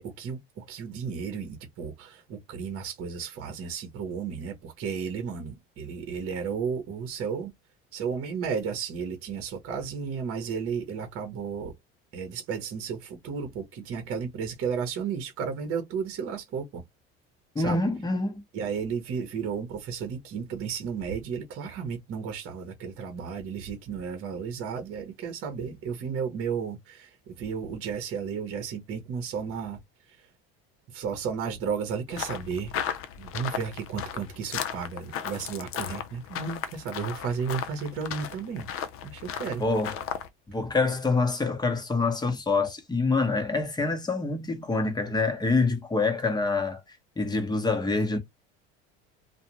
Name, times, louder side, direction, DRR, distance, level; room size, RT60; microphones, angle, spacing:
voice 1, 0.0-7.5 7.9-11.7 12.1-16.8 17.6-17.8 18.5-29.8 30.9-32.7 33.2-38.7 39.0-39.6, right 6 dB, 45° right, 0.9 m, -33 dB
voice 2, 17.5-18.4 39.6-40.0 40.5-48.2, left 3 dB, 15° left, 0.9 m, -26 dB
sound 1, 32.1-40.3, left 9 dB, 45° left, 0.6 m, -36 dB
2.4 x 2.2 x 3.0 m
supercardioid pair, 95°, 31 cm